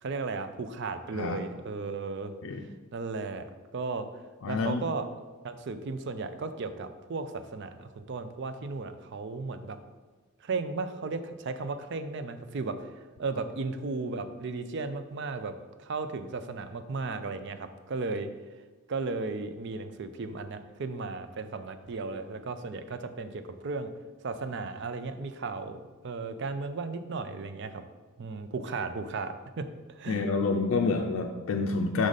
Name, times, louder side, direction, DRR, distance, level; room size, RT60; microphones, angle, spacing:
voice 1, 0.0-2.3 2.9-4.1 4.5-5.1 5.4-9.8 10.4-12.9 13.2-15.5 15.8-18.3 18.9-23.9 24.2-27.8 28.2-30.3, right 3 dB, 55° right, 10 dB, 0.5 m, -35 dB
voice 2, 4.4-4.8 30.1-32.1, left 4 dB, 65° left, 2 dB, 0.4 m, -28 dB
6.3 x 4.9 x 4.0 m, 1.3 s
head